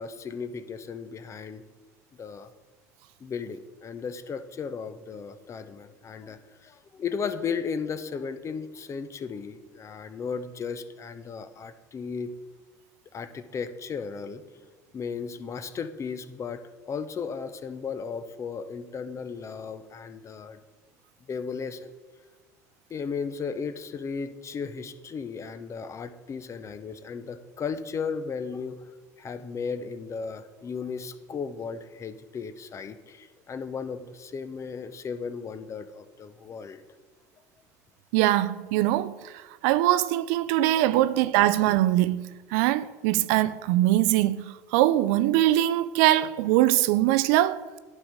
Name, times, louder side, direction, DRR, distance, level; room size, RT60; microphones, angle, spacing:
voice 1, 0.0-1.6 2.2-2.5 3.2-12.3 13.1-14.4 14.9-20.6 21.3-21.9 22.9-28.8 29.2-36.8 40.9-41.0, left 5 dB, 35° left, 0.6 m, -35 dB
voice 2, 38.1-39.2 39.6-44.4 44.7-47.6, right 14 dB, 70° right, 0.3 m, -22 dB
10.5 x 3.8 x 5.0 m
hypercardioid pair, 75°, 9 cm